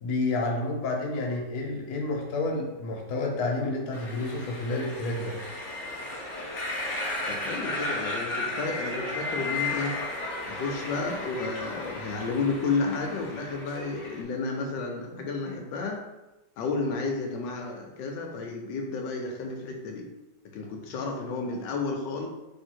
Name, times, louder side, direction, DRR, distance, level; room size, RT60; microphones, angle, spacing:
voice 1, 0.0-5.4, left 2 dB, 65° left, -1 dB, 1.3 m, -30 dB
sound 1, 3.9-14.2, left 2 dB, 50° left, 1.2 m, -34 dB
voice 2, 7.3-10.0 10.5-16.0 16.6-20.0 20.4-22.3, left 3 dB, 90° left, 1 dB, 1.3 m, -32 dB
3.7 x 2.7 x 4.4 m, 1.0 s
omnidirectional pair, 1.9 m